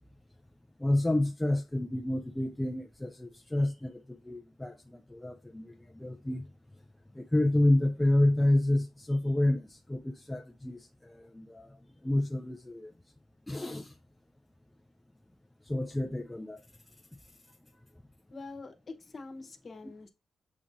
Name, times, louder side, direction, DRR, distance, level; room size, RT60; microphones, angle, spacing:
voice 1, 0.8-4.0 4.3-4.7 5.1-5.7 6.0-6.4 7.2-10.8 11.3-11.7 12.0-12.9 13.5-13.9 15.7-16.6, left 1 dB, 5° left, 0.3 m, -28 dB
voice 2, 18.3-20.1, left 3 dB, 30° left, 1.0 m, -45 dB
7.2 x 2.6 x 5.0 m
wide cardioid pair, 170°, 0 cm